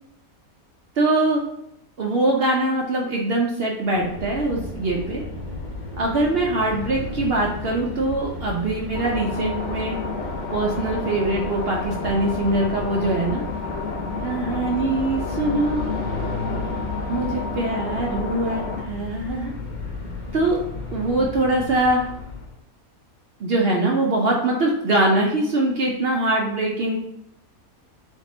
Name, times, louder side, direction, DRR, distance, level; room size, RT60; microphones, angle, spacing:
voice 1, 1.0-1.4 2.0-5.2 6.0-10.0 10.5-13.4 14.2-15.9 17.1-19.5 20.3-20.6 20.9-22.1 23.4-26.9, right 2 dB, 55° right, -1 dB, 0.7 m, -23 dB
sound 1, 3.9-22.6, left 3 dB, 75° left, 1.5 m, -33 dB
sound 2, 8.9-18.8, left 3 dB, 55° left, 0.8 m, -31 dB
3.8 x 3.6 x 3.8 m, 0.77 s
omnidirectional pair, 1.5 m